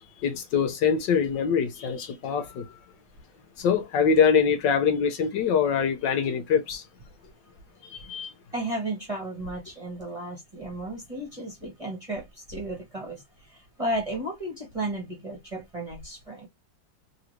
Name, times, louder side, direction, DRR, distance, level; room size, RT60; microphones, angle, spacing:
voice 1, 0.0-2.6 3.6-6.8 7.8-8.3, left 6 dB, 70° left, 1.4 m, -24 dB
voice 2, 8.5-13.2 13.8-16.5, right 1 dB, 20° right, 1.1 m, -33 dB
4.0 x 2.8 x 3.1 m
omnidirectional pair, 2.1 m